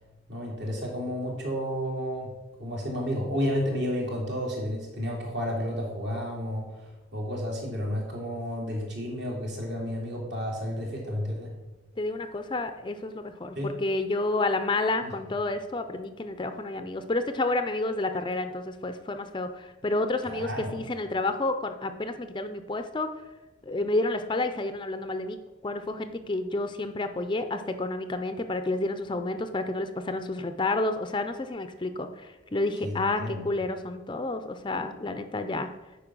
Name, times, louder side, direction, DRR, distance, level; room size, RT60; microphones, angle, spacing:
voice 1, 0.3-2.3 2.6-6.7 7.1-11.5 13.6-13.7 15.0-15.1 20.2-20.7 32.8-33.4, equal, 60° right, -2 dB, 2.6 m, -31 dB
voice 2, 12.0-23.1 23.7-25.4 25.6-35.7, left 2 dB, 25° left, 8 dB, 0.5 m, -30 dB
8.8 x 5.2 x 6.2 m, 1.1 s
head